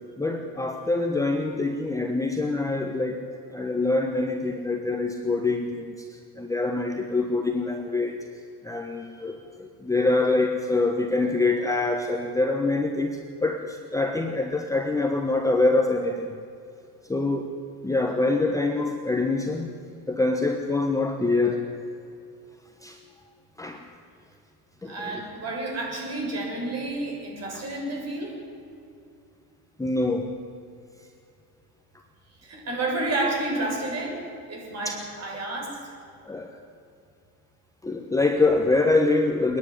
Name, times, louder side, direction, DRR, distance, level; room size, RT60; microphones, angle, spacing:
voice 1, 0.2-8.2 8.6-16.3 17.1-17.5 17.8-19.7 20.1-21.6 22.8-23.0 23.6-23.8 24.8-25.3 27.5-27.6 29.8-30.3 36.2-36.5 37.8-39.6, left 2 dB, 5° left, 3 dB, 1.2 m, -25 dB
voice 2, 24.9-28.4 32.4-35.8, right 2 dB, 35° right, 0 dB, 7.0 m, -30 dB
26.5 x 10.5 x 10.0 m, 2.5 s
supercardioid pair, 120°, 44 cm